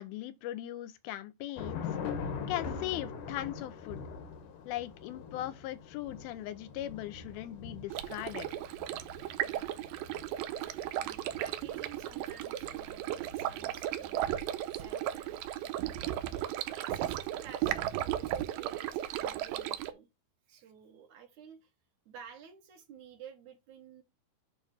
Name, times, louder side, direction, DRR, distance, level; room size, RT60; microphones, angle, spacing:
voice 1, 0.0-2.0 2.5-4.0 4.7-8.5, left 14 dB, 90° left, 2.6 m, -39 dB
Thunder / Rain, 1.6-14.1, left 6 dB, 65° left, 2.5 m, -43 dB
Stream, 7.9-19.9, right 12 dB, 80° right, 2.5 m, -35 dB
voice 2, 9.4-9.9 10.9-14.3 14.7-15.4 15.6-15.9 16.7-20.1 20.5-21.7 22.1-24.0, right 8 dB, 65° right, 2.2 m, -52 dB
8.9 x 3.2 x 6.3 m
omnidirectional pair, 4.2 m